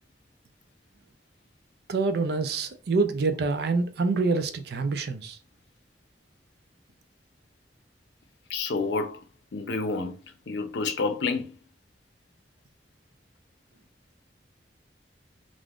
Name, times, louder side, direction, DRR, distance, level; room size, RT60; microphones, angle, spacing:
voice 1, 1.9-5.4, right 3 dB, 60° right, 0.4 m, -26 dB
voice 2, 8.5-9.2 9.5-10.2 10.5-11.5, left 4 dB, 80° left, 0.5 m, -28 dB
2.5 x 2.3 x 3.4 m
head